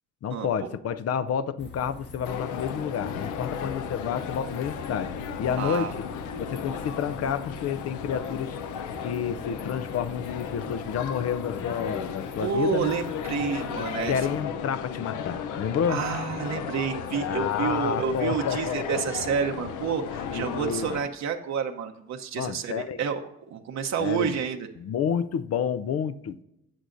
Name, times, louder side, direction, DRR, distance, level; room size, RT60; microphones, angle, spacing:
voice 1, 0.2-5.1 5.4-6.1 6.4-8.6 9.0-12.9 13.8-16.0 17.1-18.9 20.2-20.9 22.4-23.0 24.0-24.4 24.8-26.4, left 8 dB, 55° left, 0.5 m, -30 dB
sound 1, 1.6-14.4, left 2 dB, 35° left, 1.3 m, -47 dB
sound 2, 2.2-21.0, left 7 dB, 90° left, 0.7 m, -35 dB
voice 2, 5.6-5.9 12.4-14.2 15.9-23.2 23.5-24.7, right 6 dB, 65° right, 0.9 m, -29 dB
16.5 x 6.3 x 2.6 m
cardioid pair, 90°, 30 cm